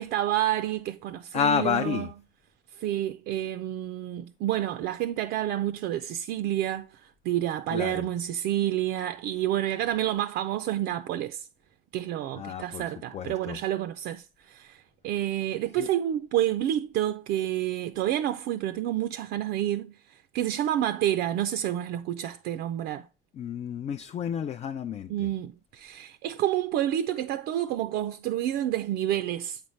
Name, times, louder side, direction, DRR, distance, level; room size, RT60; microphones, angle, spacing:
voice 1, 0.0-2.1 2.8-6.9 7.2-11.5 11.9-19.9 20.3-23.1 25.1-29.6, right 12 dB, 80° right, 0.4 m, -29 dB
voice 2, 1.3-2.1 7.7-8.1 12.4-12.8 13.1-13.6 15.8-15.9 23.3-25.1, left 7 dB, 40° left, 0.4 m, -30 dB
7.8 x 4.1 x 3.2 m
cardioid pair, 110°, 17 cm